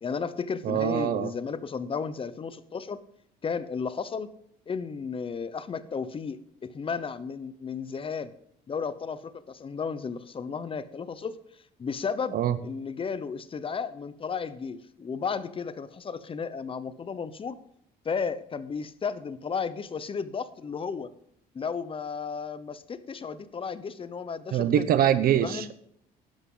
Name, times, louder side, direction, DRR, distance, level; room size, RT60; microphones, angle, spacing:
voice 1, 0.0-3.0 3.4-4.3 4.7-8.3 8.7-12.4 12.6-17.6 18.0-21.1 21.5-25.0 25.4-25.7, left 5 dB, 30° left, 14 dB, 0.9 m, -34 dB
voice 2, 0.6-1.3 12.3-12.6 24.5-25.7, right 10 dB, 60° right, 12 dB, 0.9 m, -24 dB
12.0 x 11.0 x 4.0 m, 0.69 s
cardioid pair, 110°, 17 cm